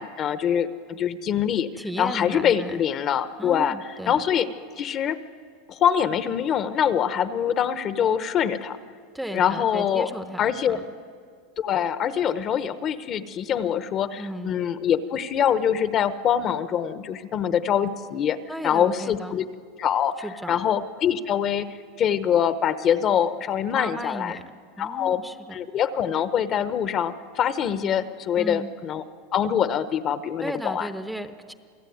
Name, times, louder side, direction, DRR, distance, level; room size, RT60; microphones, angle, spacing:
voice 1, 0.0-1.7 2.0-3.8 4.1-4.5 4.8-5.2 5.7-8.8 9.3-10.1 10.4-10.8 11.6-19.5 19.8-20.2 20.5-21.7 22.0-24.4 24.8-25.2 25.5-29.0 29.3-30.9, left 9 dB, 30° left, 12 dB, 0.9 m, -24 dB
voice 2, 1.8-2.8 3.4-4.2 9.1-10.9 14.2-14.5 18.5-19.4 20.2-20.6 23.8-24.4 24.8-25.6 28.4-28.7 30.4-31.5, equal, ahead, 9 dB, 0.8 m, -35 dB
27.5 x 17.0 x 9.3 m, 2.1 s
supercardioid pair, 155°, 0 cm